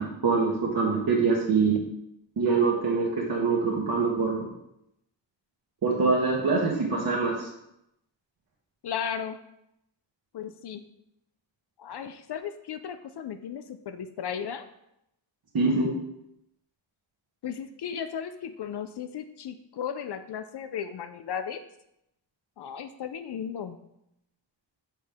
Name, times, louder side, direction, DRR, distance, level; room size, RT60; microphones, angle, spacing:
voice 1, 0.0-1.8 2.4-4.5 5.8-7.5 15.5-15.9, right 4 dB, 50° right, -4 dB, 1.2 m, -24 dB
voice 2, 8.8-9.4 10.3-10.8 11.8-14.7 17.4-21.6 22.6-23.8, left 8 dB, 60° left, 10 dB, 0.5 m, -35 dB
7.2 x 4.4 x 3.5 m, 0.81 s
wide cardioid pair, 115°, 46 cm